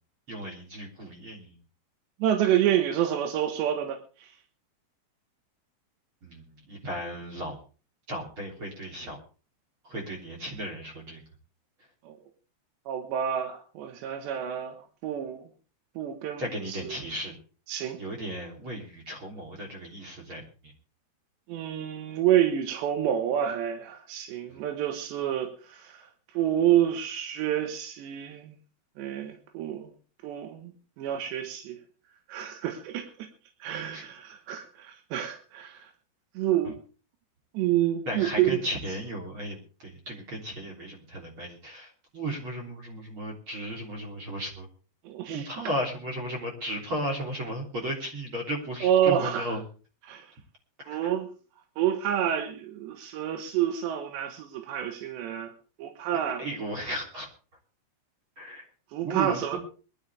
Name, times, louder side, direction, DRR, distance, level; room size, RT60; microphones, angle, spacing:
voice 1, 0.3-1.6 6.2-7.6 8.1-9.2 9.8-11.2 16.4-17.4 18.0-20.7 24.5-24.6 33.7-34.0 38.1-44.7 45.3-49.6 50.8-51.1 56.4-57.3 58.4-58.6 59.0-59.6, right 1 dB, 30° right, 1 dB, 3.7 m, -35 dB
voice 2, 2.2-4.3 12.1-12.2 12.9-14.8 15.0-15.5 16.0-17.0 17.7-18.0 21.5-26.0 26.4-28.5 29.0-29.9 30.2-30.7 31.0-31.8 32.3-33.3 33.6-35.8 36.4-36.8 37.6-38.6 45.1-45.5 48.8-49.5 50.1-50.2 50.9-51.3 51.8-55.5 55.8-56.4 58.9-59.6, right 10 dB, 85° right, 5 dB, 3.7 m, -28 dB
21.5 x 12.0 x 3.5 m, 0.36 s
omnidirectional pair, 4.9 m